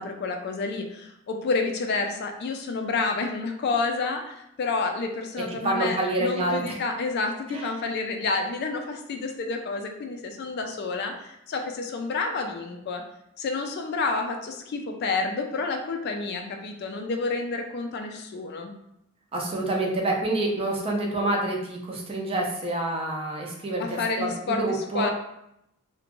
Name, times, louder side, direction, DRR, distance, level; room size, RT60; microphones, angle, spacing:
voice 1, 0.0-13.0 13.4-18.7 23.8-25.1, left 3 dB, 50° left, 4 dB, 0.3 m, -29 dB
voice 2, 5.4-6.6 7.5-7.7 19.3-25.1, right 2 dB, 25° right, 0 dB, 0.4 m, -27 dB
2.5 x 2.1 x 2.9 m, 0.80 s
head